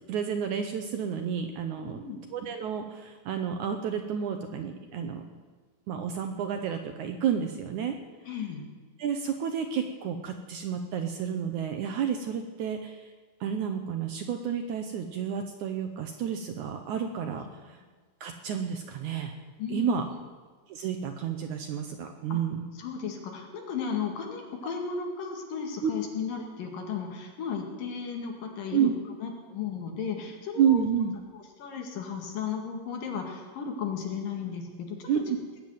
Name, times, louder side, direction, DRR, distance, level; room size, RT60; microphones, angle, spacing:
voice 1, 0.1-2.0 2.3-5.3 5.9-8.0 9.0-13.1 13.4-17.8 18.2-19.3 19.7-20.1 20.7-22.7 25.8-25.9 28.7-28.9 30.6-31.1 35.1-35.2, right 8 dB, 70° right, 6 dB, 2.0 m, -30 dB
voice 2, 8.2-8.6 19.6-20.0 22.3-22.4 22.8-28.9 29.2-30.8 31.6-35.2, left 6 dB, 70° left, 2 dB, 3.6 m, -35 dB
19.5 x 7.4 x 9.2 m, 1.4 s
omnidirectional pair, 4.2 m